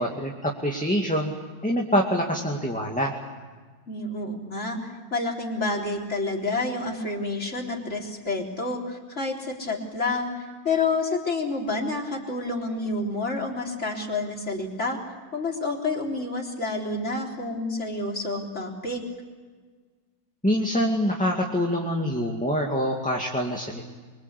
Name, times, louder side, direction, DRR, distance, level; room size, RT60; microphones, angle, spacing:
voice 1, 0.0-1.3 1.6-3.1 20.4-23.9, equal, 5° left, 0 dB, 2.1 m, -25 dB
voice 2, 3.9-15.0 15.3-19.0, left 3 dB, 40° left, -1 dB, 4.3 m, -29 dB
25.0 x 25.0 x 8.3 m, 1.4 s
omnidirectional pair, 1.8 m